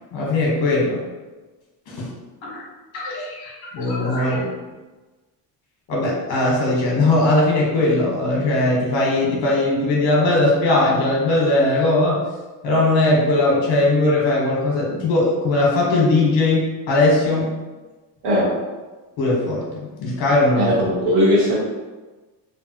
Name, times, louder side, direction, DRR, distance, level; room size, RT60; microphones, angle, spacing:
voice 1, 0.1-1.0 1.9-2.1 2.4-2.6 2.9-4.5 5.9-12.2 12.6-17.6 19.2-20.7, left 2 dB, 80° left, -3 dB, 1.2 m, -19 dB
voice 2, 20.6-21.5, equal, 70° right, -5 dB, 1.3 m, -18 dB
3.4 x 2.2 x 2.8 m, 1.2 s
cardioid pair, 175°, 44 cm